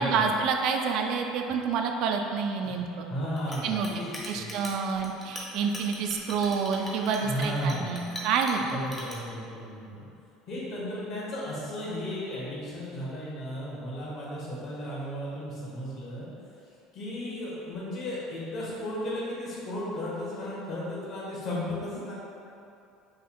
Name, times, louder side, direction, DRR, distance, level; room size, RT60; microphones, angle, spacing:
voice 1, 0.0-3.1 3.6-3.9 4.3-8.8, right 5 dB, 60° right, 3 dB, 0.3 m, -28 dB
voice 2, 3.1-4.1 4.3-4.5 7.2-8.1 8.6-10.0 10.5-16.3 16.6-22.1, equal, 45° left, -7 dB, 1.3 m, -34 dB
Chink clink, 3.4-9.1, equal, 15° left, 0.7 m, -41 dB
5.5 x 2.3 x 3.5 m, 2.6 s
cardioid pair, 145°, 0 cm